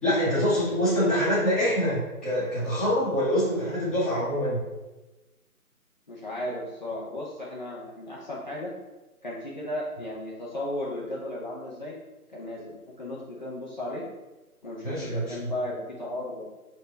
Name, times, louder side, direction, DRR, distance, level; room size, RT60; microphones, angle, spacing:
voice 1, 0.0-4.6 14.8-15.3, equal, ahead, -17 dB, 1.2 m, -25 dB
voice 2, 6.1-8.7 9.2-11.9 12.3-14.0 14.6-16.5, left 1 dB, 30° left, -5 dB, 0.7 m, -35 dB
6.3 x 4.5 x 3.3 m, 1.1 s
hypercardioid pair, 165°, 45 cm